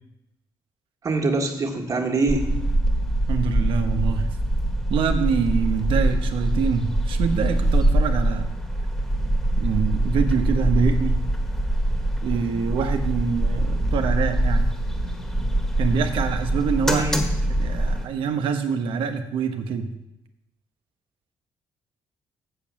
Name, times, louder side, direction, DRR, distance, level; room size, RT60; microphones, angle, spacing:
voice 1, 1.0-2.5 16.8-17.3, right 2 dB, 40° right, 2 dB, 1.8 m, -24 dB
sound 1, 2.3-18.0, right 1 dB, 5° left, 1.6 m, -23 dB
voice 2, 3.3-4.3 4.9-8.5 9.6-11.2 12.2-14.7 15.8-17.1 17.6-19.9, right 6 dB, 80° right, 7 dB, 1.1 m, -25 dB
6.9 x 6.9 x 7.5 m, 0.89 s
cardioid pair, 95°, 9 cm